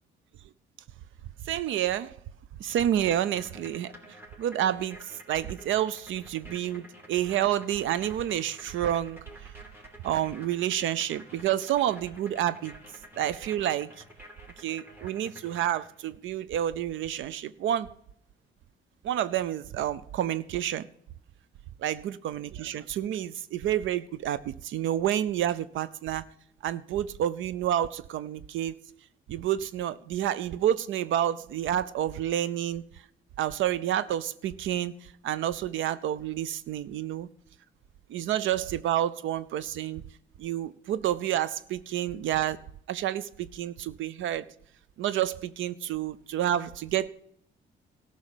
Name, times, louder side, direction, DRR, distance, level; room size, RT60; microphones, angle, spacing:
voice 1, 1.5-2.2 2.6-3.9 4.4-5.0 5.3-9.2 10.0-12.7 13.2-13.9 14.6-17.9 19.0-20.9 21.8-26.2 26.6-28.8 29.3-32.8 33.4-34.9 35.2-37.3 38.1-40.0 40.4-42.6 42.9-44.5 45.0-47.1, right 11 dB, 75° right, 16 dB, 0.6 m, -29 dB
sound 1, 3.3-16.1, equal, 10° right, 2.8 m, -50 dB
13.5 x 6.3 x 8.9 m, 0.68 s
cardioid pair, 90°, 20 cm